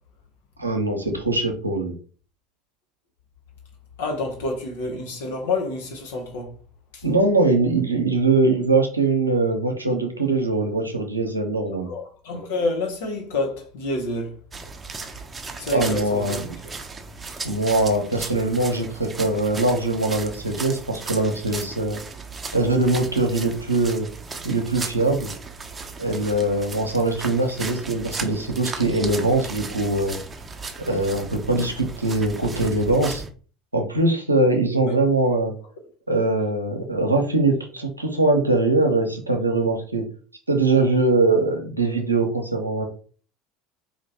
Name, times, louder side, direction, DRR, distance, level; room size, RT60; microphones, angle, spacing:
voice 1, 0.6-1.9 7.0-11.9 15.7-16.4 17.4-22.0 22.5-24.1 24.4-25.3 26.0-30.2 30.8-33.2 33.7-35.5 36.1-40.0 40.5-42.8, right 2 dB, 90° right, 0.7 m, -22 dB
voice 2, 4.0-6.5 6.9-7.0 11.9-14.4 15.6-16.7 34.9-35.0, left 2 dB, 65° left, 0.9 m, -28 dB
sound 1, 14.5-33.3, right 4 dB, 20° right, 0.7 m, -36 dB
4.5 x 2.9 x 2.9 m
figure-of-eight pair, 70°, 0 cm